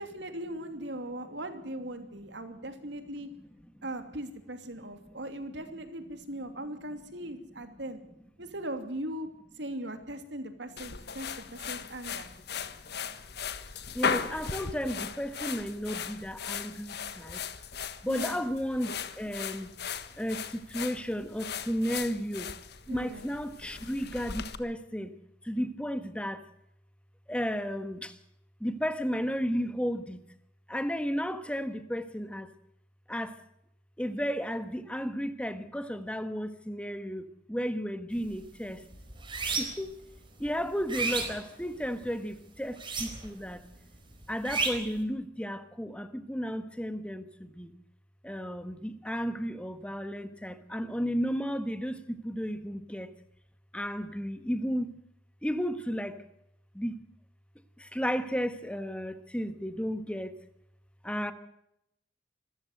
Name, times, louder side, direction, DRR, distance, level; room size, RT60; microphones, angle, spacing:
voice 1, 0.0-3.3 3.8-8.0 8.4-9.3 9.6-12.3 18.1-18.4 22.9-23.3, right 1 dB, 70° right, 2.9 m, -39 dB
sound 1, 10.8-24.6, left 6 dB, 60° left, 1.4 m, -37 dB
voice 2, 13.9-17.4 18.0-19.7 20.2-22.5 22.9-25.1 25.4-26.4 27.3-28.2 28.6-30.2 30.7-32.5 33.1-33.4 34.0-38.8 39.6-39.9 40.4-43.6 44.3-47.7 48.2-53.1 53.7-54.9 55.4-56.2 56.7-57.0 57.8-60.3 61.0-61.3, equal, 5° left, 1.4 m, -33 dB
sound 2, 38.1-38.4 38.8-39.9 40.4-42.1 42.7-43.5 43.7-45.0, right 4 dB, 30° right, 4.6 m, -32 dB
26.0 x 14.5 x 7.9 m
head